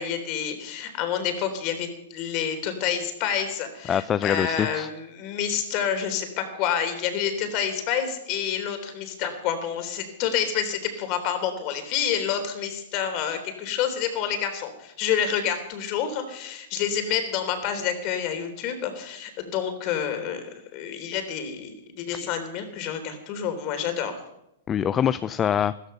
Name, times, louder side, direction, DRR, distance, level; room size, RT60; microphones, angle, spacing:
voice 1, 0.0-24.2, left 8 dB, 45° left, 8 dB, 3.6 m, -28 dB
voice 2, 3.9-4.9 24.7-25.7, left 9 dB, 25° left, 15 dB, 0.5 m, -24 dB
14.5 x 14.5 x 5.7 m, 0.82 s
hypercardioid pair, 120°, 0 cm